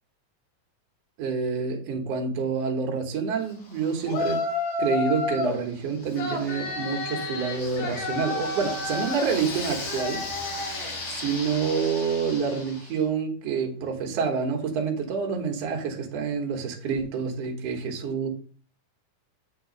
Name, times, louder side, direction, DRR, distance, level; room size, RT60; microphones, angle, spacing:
voice 1, 1.2-4.4 4.8-10.2 11.0-18.3, right 6 dB, 60° right, 2.2 m, -28 dB
Yell, 4.0-5.6 6.1-12.9, left 3 dB, 75° left, 3.9 m, -31 dB
8.2 x 3.9 x 5.2 m
omnidirectional pair, 3.7 m